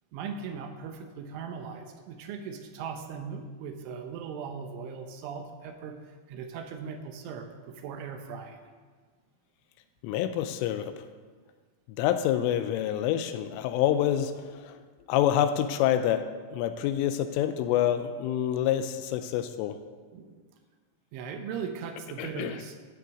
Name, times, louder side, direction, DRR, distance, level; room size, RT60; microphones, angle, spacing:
voice 1, 0.1-8.7 20.1-20.4 21.1-22.8, right 6 dB, 75° right, 6 dB, 3.1 m, -39 dB
voice 2, 10.0-11.0 12.0-14.8 15.1-19.8 22.2-22.6, left 11 dB, 85° left, 9 dB, 3.0 m, -27 dB
13.5 x 6.5 x 8.2 m, 1.5 s
omnidirectional pair, 5.9 m